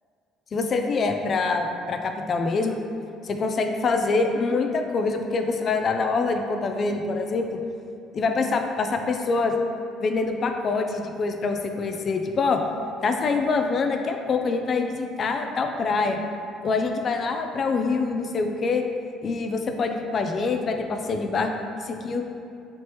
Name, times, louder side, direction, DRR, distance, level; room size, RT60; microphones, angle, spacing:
voice 1, 0.5-2.8 3.2-7.6 8.1-9.5 10.0-12.6 13.0-16.2 16.6-18.8 19.2-21.5 21.8-22.3, left 4 dB, 45° left, 5 dB, 0.3 m, -25 dB
3.2 x 2.9 x 2.9 m, 2.5 s
supercardioid pair, 75°, 0 cm